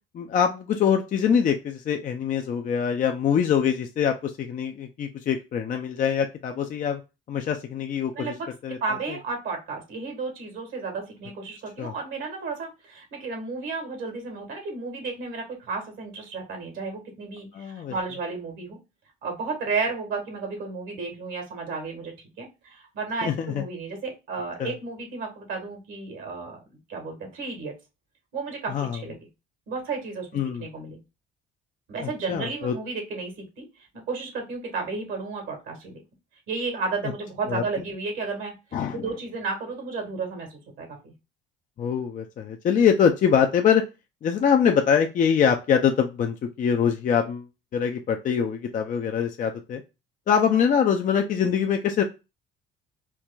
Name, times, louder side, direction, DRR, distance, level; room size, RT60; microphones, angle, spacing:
voice 1, 0.1-7.0 7.3-8.3 8.6-8.8 11.8-11.9 17.5-17.9 23.2-23.6 24.6-24.7 28.7-29.0 30.3-30.7 32.0-32.7 37.5-37.6 38.7-39.0 41.8-43.8 44.2-47.5 47.7-49.8 50.3-52.0, left 7 dB, 40° left, 4 dB, 0.4 m, -23 dB
voice 2, 8.1-8.5 8.8-18.8 19.2-27.7 28.3-29.1 29.7-30.3 30.6-31.0 31.9-36.0 36.5-38.6 38.9-41.1, right 4 dB, 70° right, 3 dB, 1.5 m, -33 dB
4.5 x 2.5 x 2.3 m, 0.28 s
cardioid pair, 105°, 21 cm